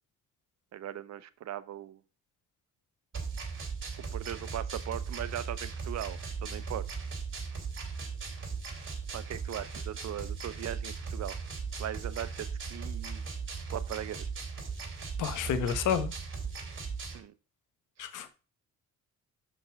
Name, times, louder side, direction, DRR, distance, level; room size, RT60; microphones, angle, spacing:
voice 1, 0.7-2.0 4.1-6.9 9.1-11.4 11.8-13.2 13.7-14.3 17.1-17.3 18.0-18.1, right 11 dB, 60° right, 0.7 m, -39 dB
sound 1, 3.1-17.2, right 5 dB, 40° right, 2.7 m, -38 dB
voice 2, 15.2-16.1 18.0-18.3, left 8 dB, 80° left, 1.1 m, -30 dB
6.7 x 5.4 x 4.6 m
cardioid pair, 90°, 30 cm